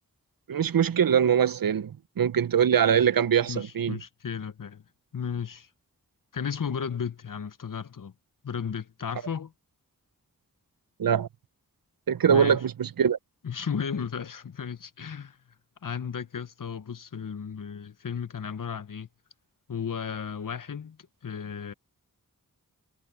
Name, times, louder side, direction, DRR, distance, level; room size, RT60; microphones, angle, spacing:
voice 1, 0.5-4.0 11.0-11.3 12.1-13.2, right 8 dB, 75° right, 0.7 m, -23 dB
voice 2, 3.5-4.8 5.1-5.7 6.3-8.1 8.4-9.5 12.3-12.6 13.4-15.4 15.8-19.1 19.7-21.0 21.2-21.7, left 7 dB, 65° left, 0.9 m, -34 dB
cardioid pair, 40°, 35 cm